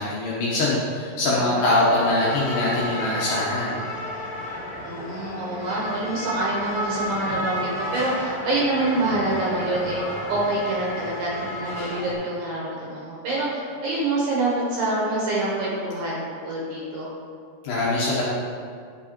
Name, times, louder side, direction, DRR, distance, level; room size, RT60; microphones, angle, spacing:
voice 1, 0.0-3.8 17.6-18.2, left 2 dB, 75° left, -6 dB, 2.2 m, -23 dB
sound 1, 1.7-12.1, left 1 dB, 60° left, 2.1 m, -32 dB
voice 2, 4.8-10.0 10.3-17.1, right 2 dB, 70° right, -5 dB, 2.2 m, -26 dB
11.0 x 4.5 x 2.9 m, 2.3 s
omnidirectional pair, 4.9 m